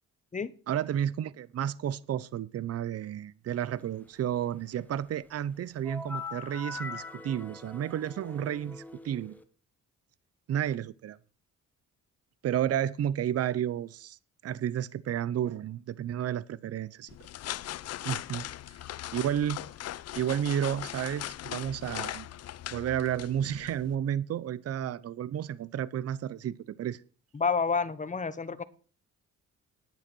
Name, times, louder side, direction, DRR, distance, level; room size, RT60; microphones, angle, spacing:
voice 1, 0.7-9.3 10.5-11.2 12.4-14.2 14.4-17.1 18.0-18.5 19.1-19.7 20.2-22.3 22.7-27.0, right 10 dB, 55° right, 0.7 m, -31 dB
sound 1, 5.8-9.4, left 3 dB, 5° left, 1.5 m, -42 dB
sound 2, 17.1-24.0, left 13 dB, 55° left, 0.5 m, -39 dB
voice 2, 27.3-28.6, left 5 dB, 25° left, 1.2 m, -29 dB
10.5 x 8.6 x 6.2 m
cardioid pair, 90°, 30 cm